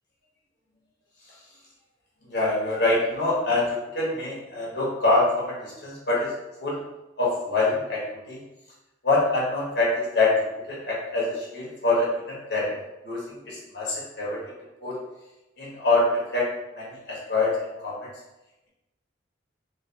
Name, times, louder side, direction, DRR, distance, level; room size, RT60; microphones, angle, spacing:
voice 1, 2.2-6.3 6.6-6.8 7.2-8.4 9.0-10.3 10.7-12.7 13.0-14.4 14.8-15.0 15.6-16.5 16.7-18.1, left 2 dB, 60° left, -6 dB, 1.3 m, -25 dB
3.3 x 3.0 x 2.8 m, 0.98 s
head